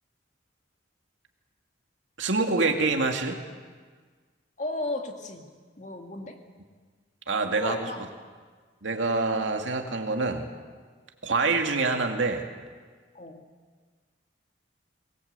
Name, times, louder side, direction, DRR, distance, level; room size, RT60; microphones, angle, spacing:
voice 1, 2.2-3.4 7.3-7.9 8.8-10.5 11.2-12.5, right 3 dB, 80° right, 3 dB, 2.3 m, -26 dB
voice 2, 4.6-6.4 7.5-8.1 13.1-13.5, left 2 dB, 40° left, 3 dB, 2.4 m, -35 dB
23.5 x 20.5 x 8.2 m, 1.5 s
head